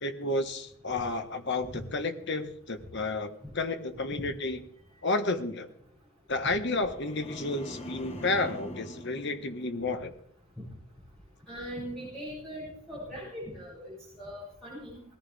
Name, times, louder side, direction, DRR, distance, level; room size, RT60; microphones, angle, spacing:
voice 1, 0.0-4.6 5.0-5.7 6.3-10.1, left 2 dB, 50° left, 8 dB, 1.3 m, -31 dB
sound 1, 6.7-10.1 10.5-10.9, equal, 30° left, 1.5 m, -43 dB
voice 2, 11.5-15.0, equal, 5° left, -9 dB, 6.8 m, -40 dB
19.5 x 14.5 x 3.6 m, 0.65 s
head